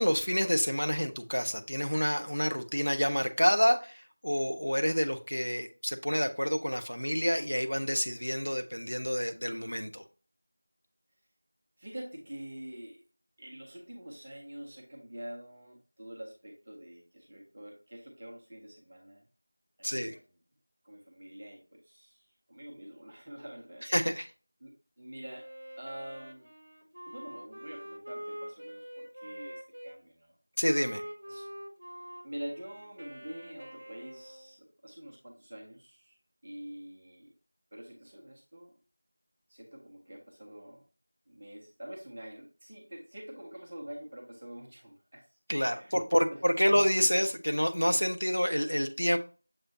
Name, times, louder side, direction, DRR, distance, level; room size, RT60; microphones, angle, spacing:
voice 1, 0.0-10.0 19.8-20.2 23.9-24.3 30.6-31.0 45.5-49.2, equal, 80° left, 0.9 m, -28 dB
voice 2, 11.8-13.1 13.4-19.2 19.8-20.3 20.8-23.9 24.6-25.5 25.8-26.5 27.1-30.4 31.3-31.5 32.2-36.2 36.4-37.3 37.7-38.7 39.5-40.8 41.3-46.4, right 1 dB, 10° right, 0.4 m, -46 dB
Wind instrument woodwind instrument, 25.3-30.0 30.6-34.6, equal, 35° right, 0.7 m, -45 dB
6.5 x 3.1 x 2.6 m
figure-of-eight pair, 180°, 0 cm